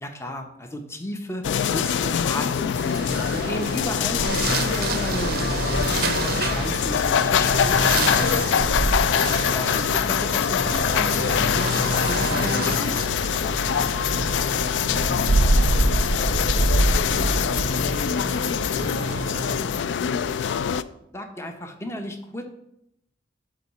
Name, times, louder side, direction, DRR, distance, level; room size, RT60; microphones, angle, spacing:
voice 1, 0.0-5.7 6.2-8.9 9.5-13.0 21.1-22.5, left 1 dB, 15° left, 5 dB, 0.7 m, -34 dB
sound 1, 1.4-20.8, left 8 dB, 85° left, 0.3 m, -24 dB
sound 2, 2.8-19.9, right 2 dB, 55° right, 0.5 m, -26 dB
voice 2, 13.4-20.3, left 3 dB, 65° left, 8 dB, 0.7 m, -42 dB
11.5 x 3.9 x 4.2 m, 0.80 s
head